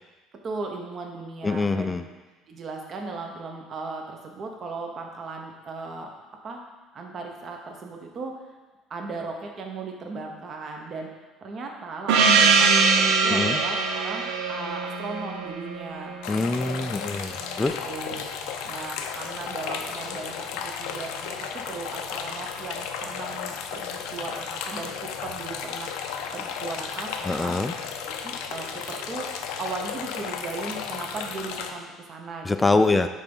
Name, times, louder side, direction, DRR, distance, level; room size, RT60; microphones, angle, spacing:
voice 1, 0.4-2.0 2.5-6.1 6.4-6.6 6.9-8.4 8.9-11.1 11.4-16.2 17.8-18.2 18.6-25.9 26.3-27.5 28.2-29.3 29.6-32.9, right 3 dB, 40° right, 2 dB, 1.0 m, -37 dB
voice 2, 1.4-2.0 13.3-13.6 16.3-17.8 27.3-27.7 32.4-33.1, left 3 dB, 15° left, 9 dB, 0.4 m, -24 dB
Gong, 12.1-16.4, right 4 dB, 85° right, 0.7 m, -22 dB
sound 1, 16.2-31.7, left 7 dB, 90° left, 0.7 m, -34 dB
9.1 x 3.4 x 5.4 m, 1.2 s
cardioid pair, 125°, 0 cm